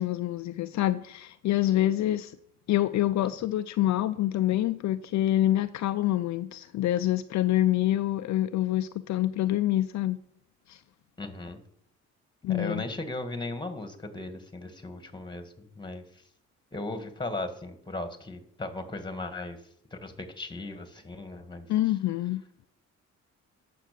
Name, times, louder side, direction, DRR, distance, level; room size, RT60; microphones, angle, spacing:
voice 1, 0.0-2.4 2.7-10.2 10.7-10.8 12.4-12.8 21.7-22.4, left 14 dB, 65° left, 10 dB, 0.5 m, -26 dB
voice 2, 11.2-11.6 12.5-16.2 16.7-19.6 19.9-21.7, left 2 dB, 15° left, 9 dB, 1.8 m, -37 dB
9.9 x 6.7 x 6.8 m, 0.72 s
cardioid pair, 90°, 30 cm